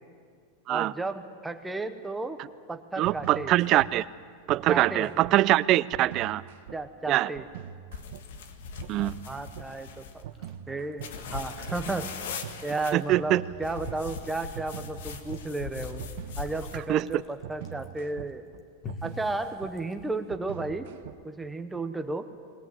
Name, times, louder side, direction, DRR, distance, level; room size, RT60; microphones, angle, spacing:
voice 1, 0.7-2.4 2.7-3.5 4.7-5.1 6.7-7.4 8.9-10.2 10.7-12.3 12.6-16.0 16.4-18.5 19.0-20.9 21.2-22.3, right 2 dB, 5° right, 8 dB, 0.9 m, -33 dB
voice 2, 3.0-4.1 4.5-6.4 7.1-7.3 8.9-9.1 12.9-13.4 16.9-17.1, right 15 dB, 35° right, 17 dB, 0.5 m, -23 dB
sound 1, 3.0-3.9 4.5-5.4 5.9-6.8 7.4-8.2 8.8-9.7 10.2-11.1 11.7-12.6 13.1-21.4, right 10 dB, 70° right, 1.1 m, -42 dB
sound 2, 7.9-10.2 11.0-12.9 13.6-16.9, left 5 dB, 80° left, 1.7 m, -40 dB
Chewing mastication, 10.2-20.4, left 3 dB, 25° left, 1.6 m, -50 dB
21.5 x 18.5 x 9.3 m, 2.1 s
supercardioid pair, 155°, 0 cm